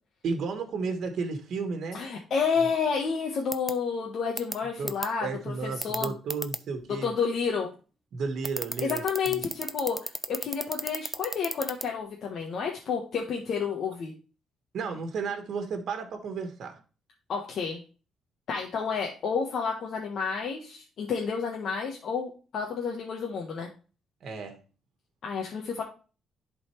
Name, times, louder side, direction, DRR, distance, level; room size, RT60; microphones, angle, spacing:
voice 1, 0.2-2.0 4.8-4.9 5.2-7.1 8.1-9.4 14.7-16.8 24.2-24.6, right 4 dB, 65° right, 6 dB, 1.3 m, -33 dB
voice 2, 1.9-6.1 7.0-7.7 8.8-14.1 17.3-17.8 18.5-23.7 25.2-25.8, left 6 dB, 65° left, -1 dB, 1.2 m, -30 dB
sound 1, 3.5-3.7 4.4-4.5 4.9-5.1 5.8-6.6 8.4-11.8, right 1 dB, 10° right, 0.6 m, -31 dB
10.5 x 4.1 x 3.2 m, 0.34 s
cardioid pair, 90°, 0 cm